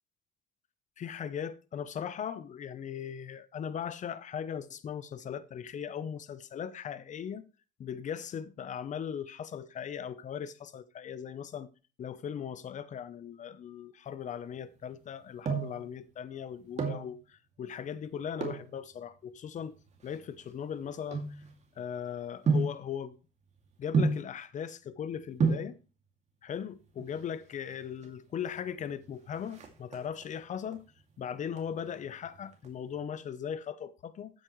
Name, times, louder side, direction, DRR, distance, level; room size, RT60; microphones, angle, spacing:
voice 1, 1.0-7.4 7.8-11.7 12.0-19.7 20.0-21.2 21.8-23.2 23.8-25.8 26.4-30.8 31.2-34.4, left 8 dB, 45° left, 0.8 m, -38 dB
sound 1, 15.0-15.9 16.6-17.1 18.3-18.7 19.4-21.8 22.5-22.9 23.9-24.4 25.1-25.2 25.4-25.8 26.9-27.4 27.7-27.8 28.0-28.2 28.5-28.9 29.2-30.3 30.7-31.1 31.5-32.7 32.9-33.0, right 4 dB, 40° right, 2.6 m, -31 dB
12.5 x 8.6 x 3.2 m
cardioid pair, 110°, 17 cm